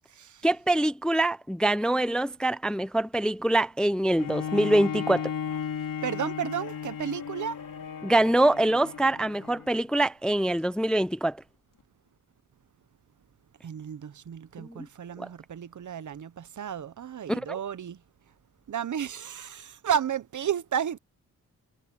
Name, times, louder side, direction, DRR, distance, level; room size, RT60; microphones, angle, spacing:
voice 1, 0.4-5.3 8.0-11.4 14.6-14.7 15.2-15.3 17.3-17.6, right 1 dB, ahead, 0.4 m, -24 dB
Bowed string instrument, 4.2-9.8 10.4-10.5, left 8 dB, 70° left, 4.2 m, -35 dB
voice 2, 6.0-7.6 13.6-18.0 18.7-21.0, right 8 dB, 60° right, 1.0 m, -32 dB
cardioid pair, 90°, 34 cm